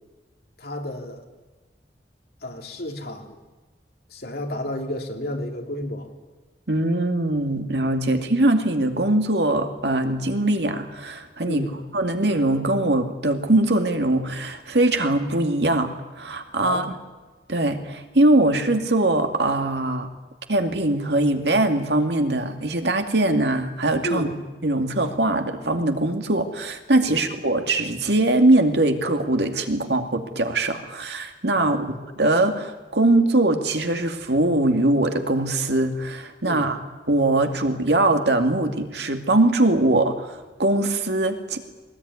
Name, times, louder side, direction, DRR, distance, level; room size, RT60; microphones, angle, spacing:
voice 1, 0.6-1.2 2.4-3.4 4.1-6.1 11.5-11.8 16.6-16.9 24.0-24.4 27.1-27.2 31.6-31.9 36.4-36.7, left 1 dB, 60° left, 3 dB, 3.4 m, -31 dB
voice 2, 6.7-11.7 11.9-17.0 17.5-20.1 20.5-24.3 24.6-31.9 32.2-36.8 37.1-41.6, right 2 dB, 70° right, 6 dB, 2.4 m, -22 dB
21.5 x 19.5 x 9.8 m, 1.2 s
head